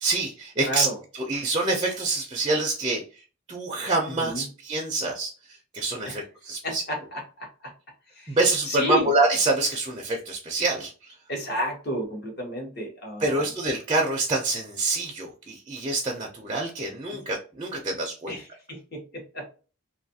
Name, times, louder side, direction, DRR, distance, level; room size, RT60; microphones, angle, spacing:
voice 1, 0.0-0.9 1.1-3.0 3.5-5.3 5.7-6.8 8.3-10.9 13.2-18.4, right 2 dB, 25° right, 0 dB, 0.4 m, -26 dB
voice 2, 0.7-1.0 4.2-4.4 6.0-6.2 6.6-7.5 8.2-8.4 8.7-9.1 11.3-13.5 17.1-17.2 18.3-19.5, equal, 50° left, 1 dB, 0.9 m, -32 dB
2.6 x 2.3 x 2.7 m, 0.35 s
head